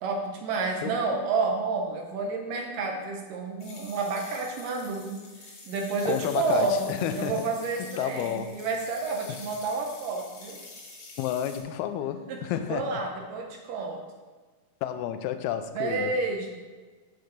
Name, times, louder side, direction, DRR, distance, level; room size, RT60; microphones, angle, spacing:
voice 1, 0.0-10.6 12.3-14.0 15.8-16.6, right 3 dB, 70° right, 2.3 m, -30 dB
sound 1, 3.6-11.6, left 3 dB, 50° left, 2.9 m, -47 dB
voice 2, 6.1-7.4 7.8-8.6 9.3-9.4 11.2-13.0 14.8-16.1, left 10 dB, 90° left, 2.6 m, -31 dB
7.2 x 6.6 x 6.6 m
omnidirectional pair, 4.5 m